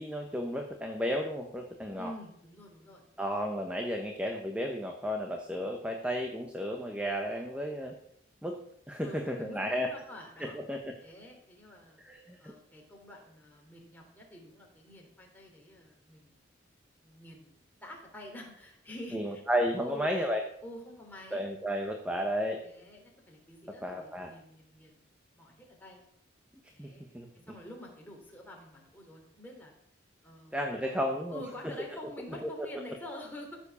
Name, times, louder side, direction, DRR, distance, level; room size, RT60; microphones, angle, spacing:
voice 1, 0.0-2.1 3.2-7.9 8.4-8.6 8.9-9.9 10.4-10.9 12.0-12.5 19.1-20.4 21.3-22.6 23.8-24.3 26.8-26.9 27.1-27.3 30.5-31.7 32.4-32.7, equal, 5° right, 3 dB, 1.0 m, -33 dB
voice 2, 2.0-3.0 9.0-10.6 11.0-12.0 12.4-16.3 17.0-19.4 19.8-20.1 20.6-21.5 22.6-25.0 25.4-26.0 26.7-27.0 27.5-29.7 30.2-30.6 30.8-33.6, left 1 dB, 10° left, -1 dB, 3.2 m, -47 dB
15.0 x 7.2 x 6.9 m, 0.73 s
head